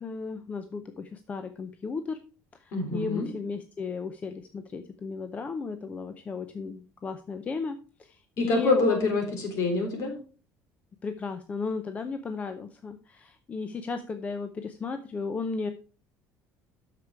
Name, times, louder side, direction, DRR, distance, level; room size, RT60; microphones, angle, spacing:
voice 1, 0.0-0.8 1.3-2.0 2.9-4.3 4.7-7.7 8.4-9.1 11.0-12.9 13.5-14.5 14.8-15.7, left 4 dB, 20° left, 9 dB, 0.6 m, -34 dB
voice 2, 2.7-3.3 8.4-10.1, left 3 dB, 50° left, 3 dB, 3.6 m, -26 dB
8.4 x 6.7 x 4.6 m, 0.37 s
cardioid pair, 155°, 6 cm